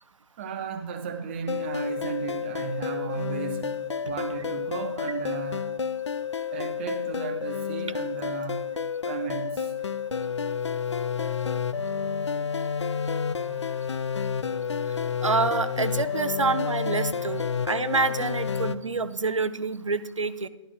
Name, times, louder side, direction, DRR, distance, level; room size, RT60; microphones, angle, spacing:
voice 1, 0.4-3.7 4.0-5.7 6.5-8.7 9.0-9.7 14.0-14.1 14.5-14.6, right 6 dB, 20° right, 0.8 m, -34 dB
sound 1, 1.5-18.8, left 6 dB, 65° left, 0.4 m, -30 dB
voice 2, 15.2-20.5, right 4 dB, 75° right, 0.6 m, -27 dB
12.0 x 12.0 x 2.4 m
figure-of-eight pair, 145°, 16 cm